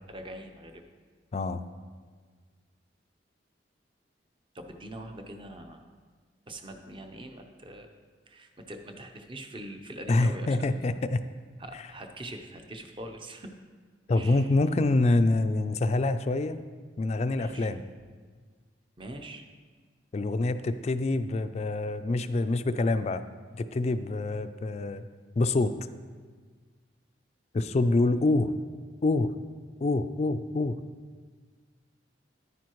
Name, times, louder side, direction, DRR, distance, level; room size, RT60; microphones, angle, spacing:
voice 1, 0.1-0.8 4.5-5.9 6.5-7.9 8.3-10.7 11.6-13.5 14.1-14.5 17.4-17.7 19.0-19.4 28.1-28.3, right 1 dB, 25° right, 5 dB, 0.7 m, -43 dB
voice 2, 1.3-1.6 10.1-11.3 14.1-16.6 17.0-17.8 20.1-23.2 23.5-25.0 25.4-25.7 27.5-28.5 29.0-29.3 29.8-30.8, left 2 dB, 35° left, 11 dB, 0.3 m, -26 dB
10.0 x 9.3 x 3.0 m, 1.5 s
head